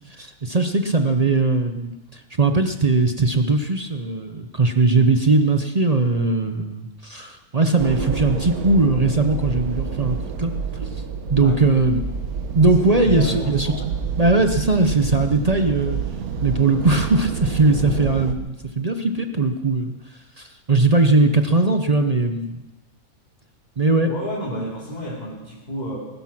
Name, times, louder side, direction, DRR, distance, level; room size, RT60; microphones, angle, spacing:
voice 1, 0.1-10.5 10.8-10.9 11.3-12.0 12.5-13.7 14.2-16.0 16.4-19.9 20.4-22.6 23.8-24.1, right 3 dB, 35° right, 7 dB, 0.7 m, -19 dB
sound 1, 7.8-18.3, right 6 dB, 85° right, 1.5 m, -28 dB
voice 2, 12.6-13.8 24.1-26.0, equal, 30° left, -6 dB, 3.4 m, -31 dB
20.0 x 12.0 x 6.0 m, 1.1 s
omnidirectional pair, 1.5 m